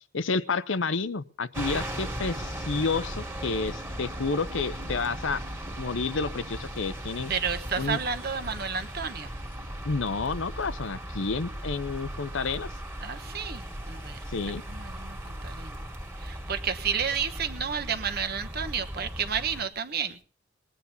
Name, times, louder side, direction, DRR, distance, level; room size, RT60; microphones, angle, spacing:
voice 1, 0.1-5.4 5.8-7.3 7.8-8.0 9.8-12.7 14.3-14.6, left 4 dB, 70° left, 14 dB, 0.8 m, -30 dB
sound 1, 1.5-19.6, right 1 dB, 10° right, 2.1 m, -37 dB
voice 2, 7.3-9.3 13.0-14.2 14.7-15.8 16.2-20.2, right 6 dB, 50° right, 8 dB, 1.2 m, -31 dB
20.5 x 9.6 x 5.5 m, 0.41 s
head